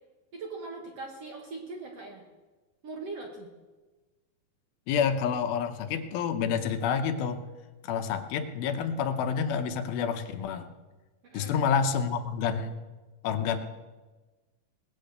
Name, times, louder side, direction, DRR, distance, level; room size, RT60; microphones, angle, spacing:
voice 1, 0.3-2.3 2.8-3.5 11.2-11.5, right 3 dB, 55° right, 1 dB, 1.9 m, -40 dB
voice 2, 4.9-7.4 7.8-10.7 11.3-12.8 13.2-13.6, left 7 dB, 80° left, 8 dB, 2.7 m, -28 dB
19.0 x 8.5 x 6.6 m, 1.2 s
omnidirectional pair, 4.3 m